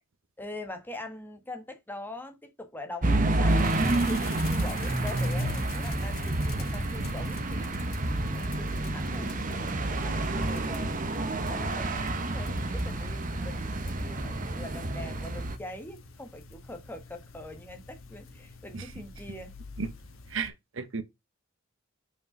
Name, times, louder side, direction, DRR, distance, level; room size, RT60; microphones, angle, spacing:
voice 1, 0.4-7.9 8.2-11.1 11.5-19.5, left 1 dB, 10° left, 1.3 m, -43 dB
sound 1, 3.0-15.6, right 2 dB, 40° right, 1.0 m, -29 dB
sound 2, 3.5-20.5, left 5 dB, 85° left, 1.4 m, -48 dB
voice 2, 20.3-21.0, right 5 dB, 70° right, 0.9 m, -34 dB
5.4 x 5.3 x 5.3 m
head